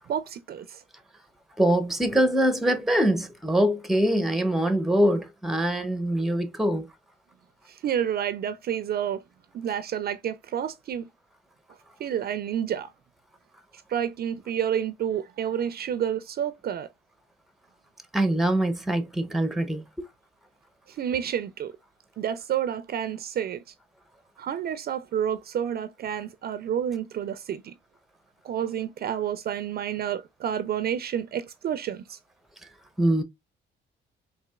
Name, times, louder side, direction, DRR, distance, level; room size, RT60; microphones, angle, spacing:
voice 1, 0.1-0.8 7.7-9.2 9.5-11.1 12.0-12.9 13.9-16.9 20.9-21.7 22.2-23.6 24.4-27.7 28.4-32.2, right 9 dB, 50° right, 0.4 m, -29 dB
voice 2, 1.6-6.9 18.1-19.8 33.0-33.2, right 1 dB, ahead, 0.6 m, -23 dB
4.0 x 2.6 x 2.2 m
cardioid pair, 90°, 20 cm